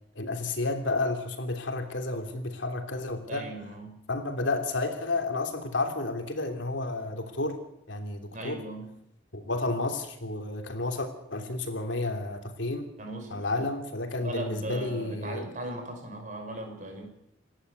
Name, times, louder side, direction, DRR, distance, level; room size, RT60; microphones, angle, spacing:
voice 1, 0.1-3.4 4.1-7.6 7.9-8.6 9.3-12.9 13.3-15.4, left 2 dB, 75° left, 5 dB, 3.1 m, -31 dB
voice 2, 3.3-3.9 8.3-8.8 13.0-13.6 14.2-17.0, right 1 dB, 40° right, 3 dB, 5.6 m, -38 dB
27.5 x 11.5 x 8.3 m, 0.81 s
head